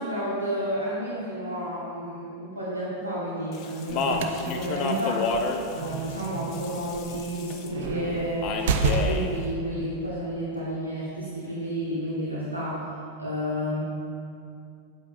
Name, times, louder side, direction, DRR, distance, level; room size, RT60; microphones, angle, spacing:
voice 1, 0.0-12.8 13.2-13.8, equal, 80° right, -7 dB, 1.2 m, -31 dB
Speech, 3.5-7.7 8.4-9.3, left 4 dB, 40° left, 0.6 m, -30 dB
sound 1, 3.9-9.5, right 4 dB, 55° right, 0.5 m, -31 dB
9.0 x 8.4 x 2.4 m, 2.4 s
figure-of-eight pair, 90°, 0 cm